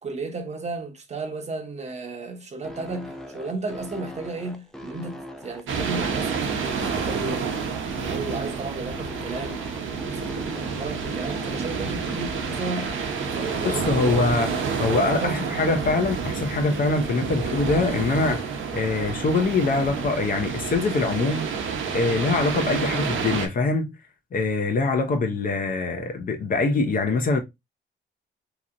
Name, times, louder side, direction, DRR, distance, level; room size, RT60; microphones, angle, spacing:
voice 1, 0.0-9.7 10.1-14.2 14.9-15.5, right 3 dB, 35° right, 0.8 m, -34 dB
sound 1, 2.6-14.9, left 1 dB, ahead, 0.4 m, -40 dB
sound 2, 5.7-23.5, right 6 dB, 85° right, 0.8 m, -29 dB
voice 2, 13.6-21.5 21.9-23.9 24.3-27.4, left 3 dB, 45° left, 0.6 m, -24 dB
2.9 x 2.8 x 2.5 m
cardioid pair, 130°, 20 cm